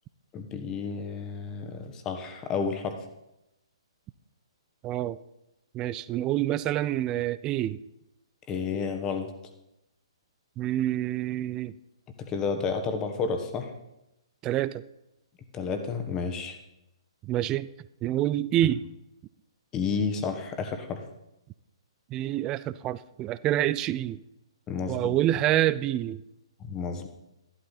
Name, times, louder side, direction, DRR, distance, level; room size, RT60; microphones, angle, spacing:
voice 1, 0.3-3.0 8.5-9.3 12.2-13.7 15.5-16.6 19.7-21.0 24.7-25.2 26.6-27.1, left 5 dB, 20° left, 6 dB, 1.3 m, -31 dB
voice 2, 4.8-5.2 5.7-7.8 10.6-11.7 14.4-14.8 17.2-17.7 18.0-18.8 22.1-24.2 24.9-26.2, right 13 dB, 20° right, 18 dB, 0.4 m, -27 dB
13.0 x 12.0 x 4.1 m, 0.90 s
figure-of-eight pair, 125°, 3 cm